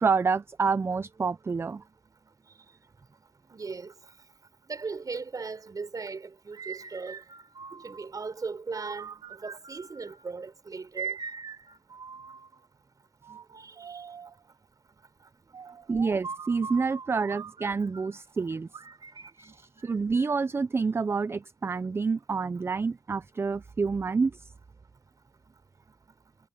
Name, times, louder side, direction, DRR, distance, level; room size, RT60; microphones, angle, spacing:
voice 1, 0.0-1.8 7.7-7.8 15.9-18.7 19.4-24.3, right 4 dB, 30° right, 0.3 m, -28 dB
voice 2, 3.5-3.9 4.7-7.2 7.8-11.2 13.6-14.1, right 4 dB, 45° right, 5.9 m, -38 dB
sound 1, 6.5-8.1 8.7-10.3 11.0-12.6 13.2-14.4 15.5-18.3 18.7-20.5, right 5 dB, 60° right, 3.3 m, -42 dB
wide cardioid pair, 180°, 9 cm